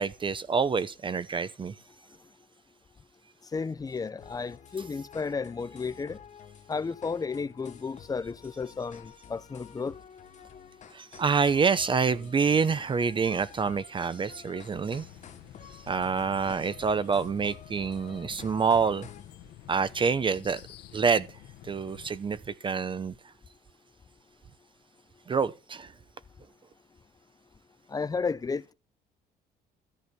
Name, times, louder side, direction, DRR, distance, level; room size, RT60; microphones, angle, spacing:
voice 1, 0.0-1.7 10.9-15.1 15.7-19.1 19.7-20.6 20.9-21.4 21.6-23.1 25.3-25.9, right 5 dB, 30° right, 0.7 m, -27 dB
voice 2, 3.5-6.2 6.7-9.9 27.9-28.7, left 5 dB, 20° left, 0.7 m, -33 dB
sound 1, 4.2-19.3, left 8 dB, 45° left, 1.6 m, -50 dB
sound 2, 14.7-22.1, left 12 dB, 75° left, 1.2 m, -50 dB
13.5 x 6.2 x 7.0 m
cardioid pair, 110°, 17 cm